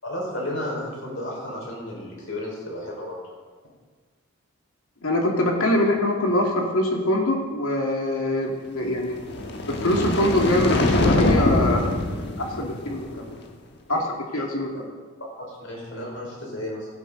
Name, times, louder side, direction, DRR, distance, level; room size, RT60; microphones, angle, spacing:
voice 1, 0.0-3.2 14.7-14.8 15.5-16.9, left 1 dB, 70° left, -2 dB, 4.9 m, -33 dB
voice 2, 5.0-9.1 9.6-11.9 12.4-13.4 13.9-14.9, left 1 dB, 85° left, 0 dB, 2.3 m, -24 dB
sound 1, 9.1-13.4, left 2 dB, 50° left, 1.3 m, -24 dB
16.0 x 13.0 x 4.0 m, 1.5 s
head